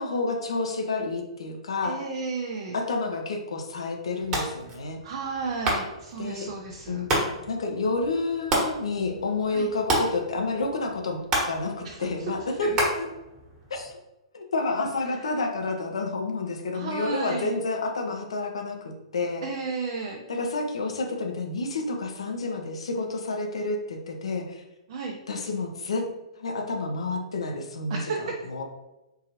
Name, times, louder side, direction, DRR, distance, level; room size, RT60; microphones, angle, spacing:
voice 1, 0.0-2.0 2.7-5.0 6.2-6.5 6.9-7.1 7.4-11.2 11.5-13.1 13.7-14.0 14.3-19.4 20.3-24.6 25.3-26.0 26.4-28.0 28.5-28.6, left 3 dB, 65° left, 3 dB, 0.7 m, -29 dB
voice 2, 1.8-2.8 5.0-7.0 9.5-9.7 11.8-12.1 12.6-12.8 16.7-17.5 19.4-20.2 24.9-25.2 27.9-28.4, right 4 dB, 45° right, 0 dB, 0.5 m, -33 dB
sound 1, 4.2-13.9, right 1 dB, 25° right, 1.2 m, -32 dB
3.8 x 2.7 x 2.8 m, 0.98 s
figure-of-eight pair, 115°, 3 cm